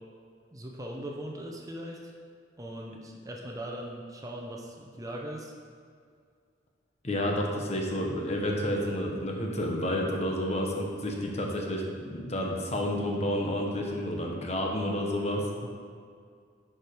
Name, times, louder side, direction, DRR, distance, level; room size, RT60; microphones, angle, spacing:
voice 1, 0.5-2.1 2.6-5.5 15.6-15.7, right 1 dB, 20° right, 0 dB, 0.8 m, -40 dB
voice 2, 7.0-11.8 12.1-15.4, left 1 dB, 40° left, 0 dB, 1.2 m, -30 dB
10.0 x 5.0 x 4.6 m, 2.1 s
head